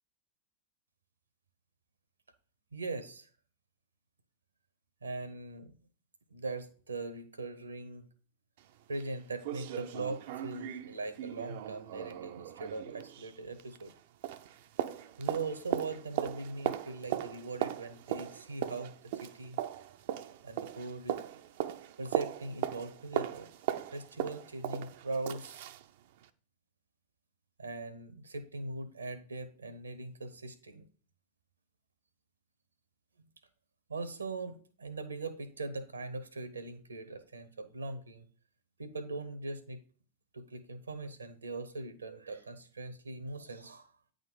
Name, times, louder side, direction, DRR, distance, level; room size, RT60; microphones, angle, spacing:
voice 1, 2.7-3.3 5.0-5.7 6.3-8.1 8.9-13.9 15.2-19.6 20.4-21.2 22.0-23.5 23.9-25.6 27.6-30.8 33.9-38.3 38.8-39.8 40.3-43.9, right 3 dB, 75° right, 12 dB, 0.9 m, -40 dB
sound 1, 8.6-8.7 9.0-9.1 9.4-14.0 14.2-25.8 26.2-26.3, right 12 dB, 50° right, 0.5 m, -38 dB
9.3 x 3.9 x 5.2 m, 0.41 s
figure-of-eight pair, 90°, 0 cm